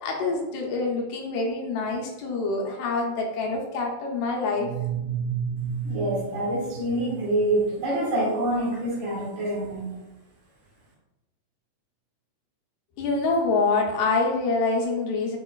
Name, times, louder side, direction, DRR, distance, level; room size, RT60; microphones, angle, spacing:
voice 1, 0.0-4.7 13.0-15.4, left 3 dB, 75° left, 0 dB, 2.0 m, -26 dB
sound 1, 4.6-8.3, right 7 dB, 80° right, 2.1 m, -32 dB
voice 2, 5.8-9.8, right 1 dB, 55° right, -5 dB, 2.3 m, -26 dB
6.2 x 2.9 x 2.3 m, 0.98 s
omnidirectional pair, 3.5 m